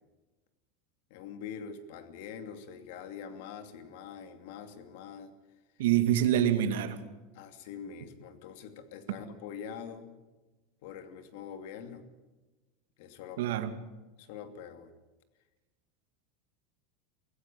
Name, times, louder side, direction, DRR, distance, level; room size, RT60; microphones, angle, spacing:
voice 1, 1.1-5.3 7.3-10.1 10.8-12.0 13.0-13.5 14.2-14.9, left 7 dB, 60° left, 9 dB, 2.7 m, -44 dB
voice 2, 5.8-7.0 13.4-13.7, right 11 dB, 85° right, 10 dB, 2.3 m, -26 dB
24.5 x 16.0 x 9.2 m, 1.2 s
supercardioid pair, 175°, 0 cm